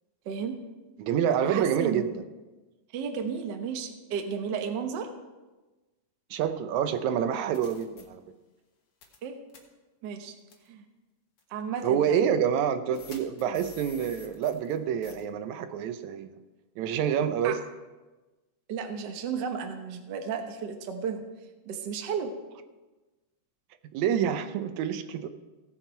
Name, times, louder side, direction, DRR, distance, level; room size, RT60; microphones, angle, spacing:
voice 1, 0.2-0.5 1.4-2.0 2.9-5.1 9.2-9.4 10.0-10.3 10.7-10.8 11.5-12.2 17.4-17.6 18.7-21.2 21.6-22.3, right 6 dB, 65° right, 5 dB, 1.1 m, -33 dB
voice 2, 1.0-2.1 6.3-8.2 11.8-16.4 16.8-17.6 23.9-25.3, right 8 dB, 80° right, 10 dB, 2.0 m, -27 dB
sound 1, 6.9-7.0 7.5-8.0 9.0-9.2 9.5-9.6 10.5-10.7 11.4-11.5 12.9-14.8 15.0-15.2, left 5 dB, 55° left, 2.1 m, -49 dB
16.5 x 7.6 x 4.5 m, 1.2 s
omnidirectional pair, 3.3 m